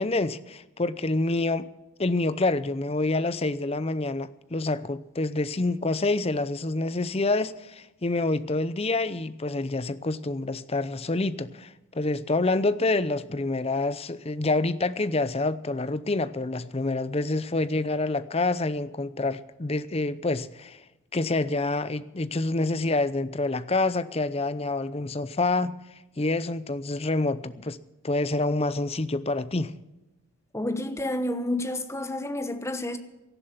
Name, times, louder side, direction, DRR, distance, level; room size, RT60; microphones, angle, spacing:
voice 1, 0.0-1.7 2.0-20.8 21.1-25.7 26.2-27.8 28.0-29.7, left 2 dB, 30° left, 0.6 m, -27 dB
voice 2, 30.5-33.0, left 1 dB, 15° left, 1.1 m, -30 dB
18.0 x 11.5 x 5.9 m
head